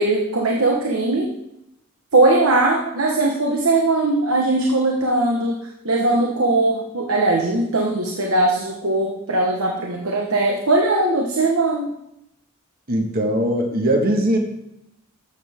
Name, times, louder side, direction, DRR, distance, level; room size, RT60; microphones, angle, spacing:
voice 1, 0.0-1.3 2.1-5.6 5.8-11.9, right 2 dB, 80° right, 0 dB, 1.2 m, -19 dB
voice 2, 12.9-14.4, right 1 dB, 45° right, 2 dB, 1.6 m, -20 dB
13.5 x 7.7 x 3.6 m, 0.84 s
head